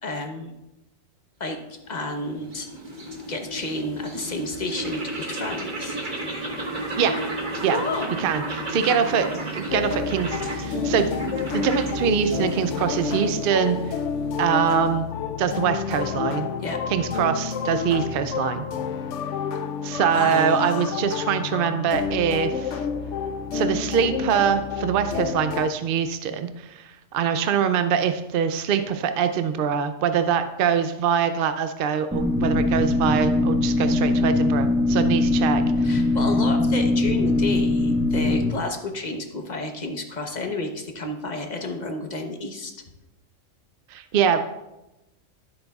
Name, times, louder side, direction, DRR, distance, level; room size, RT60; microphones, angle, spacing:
voice 1, 0.0-0.5 1.4-1.6 1.9-2.7 3.3-6.0 7.7-8.1 16.6-16.8 20.1-21.0 35.8-42.7, left 2 dB, 35° left, 4 dB, 1.0 m, -31 dB
sound 1, 1.7-15.1, right 1 dB, 40° right, 1.5 m, -33 dB
voice 2, 8.2-11.1 11.5-14.0 14.4-15.1 15.4-16.5 16.9-18.6 19.8-22.9 23.5-36.0 43.9-44.4, right 7 dB, 65° right, 9 dB, 0.5 m, -24 dB
sound 2, 9.7-25.7, left 6 dB, 70° left, 0.9 m, -29 dB
sound 3, 32.1-38.5, left 2 dB, 10° right, 1.1 m, -21 dB
13.0 x 7.9 x 2.3 m, 0.96 s
omnidirectional pair, 1.4 m